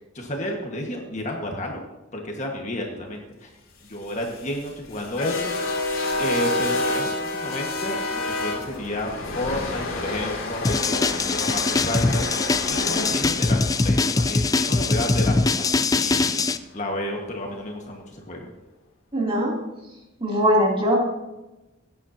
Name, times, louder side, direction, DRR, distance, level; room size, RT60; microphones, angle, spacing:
voice 1, 0.0-1.8 2.1-3.5 3.9-5.6 6.2-12.3 12.7-15.7 15.9-16.4 16.7-18.5, left 1 dB, 35° left, 1 dB, 1.5 m, -31 dB
sound 1, 3.9-16.1, left 2 dB, 75° left, 2.5 m, -30 dB
sound 2, 10.6-16.6, left 3 dB, 15° left, 0.3 m, -22 dB
voice 2, 19.1-19.5 20.2-21.0, equal, 25° right, -3 dB, 2.8 m, -20 dB
17.5 x 9.5 x 2.8 m, 1.0 s
head